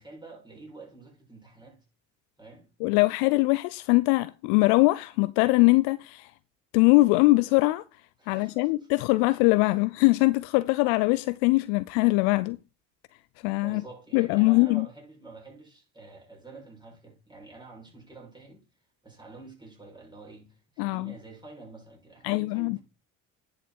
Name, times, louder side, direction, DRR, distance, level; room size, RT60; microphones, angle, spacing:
voice 1, 0.0-1.8 2.4-2.7 8.2-8.9 9.6-9.7 13.6-18.7 19.0-22.8, right 3 dB, 10° right, 6.9 m, -48 dB
voice 2, 2.8-6.3 6.7-7.8 8.3-12.6 13.4-13.8 14.1-14.9 20.8-21.1 22.2-22.8, left 23 dB, 75° left, 0.5 m, -22 dB
10.0 x 6.7 x 4.4 m
hypercardioid pair, 65°, 44 cm